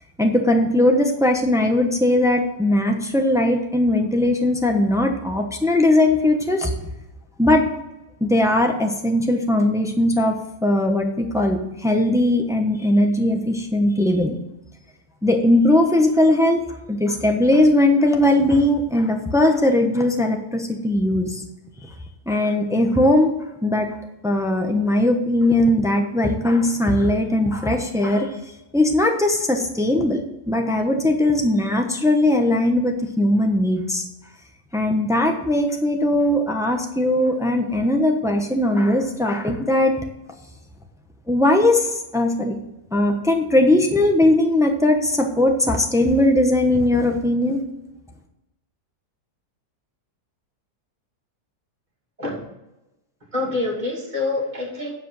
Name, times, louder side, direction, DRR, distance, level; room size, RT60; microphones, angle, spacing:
voice 1, 0.2-6.7 7.4-7.7 8.2-14.4 15.2-21.4 22.3-23.3 23.6-23.9 24.2-28.3 28.7-34.0 34.7-39.9 41.3-42.6 42.9-47.6, left 1 dB, 5° right, 3 dB, 0.7 m, -19 dB
voice 2, 53.3-54.9, left 2 dB, 25° right, -3 dB, 2.8 m, -26 dB
8.9 x 5.1 x 7.6 m, 0.94 s
omnidirectional pair, 1.8 m